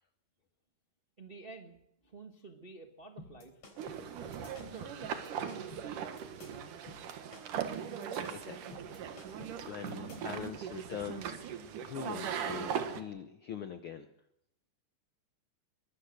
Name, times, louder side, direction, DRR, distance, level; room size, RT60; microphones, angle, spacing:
voice 1, 1.2-1.8 2.0-3.6 4.1-5.1, right 3 dB, 40° right, 3 dB, 0.7 m, -50 dB
sound 1, 3.2-10.4, left 2 dB, 50° left, 4.8 m, -53 dB
sound 2, 3.8-13.0, right 8 dB, 80° right, 3.0 m, -39 dB
voice 2, 8.3-8.8 9.2-11.4 11.8-14.1, left 8 dB, 75° left, 9 dB, 1.2 m, -43 dB
23.5 x 18.5 x 6.5 m, 0.81 s
omnidirectional pair, 3.6 m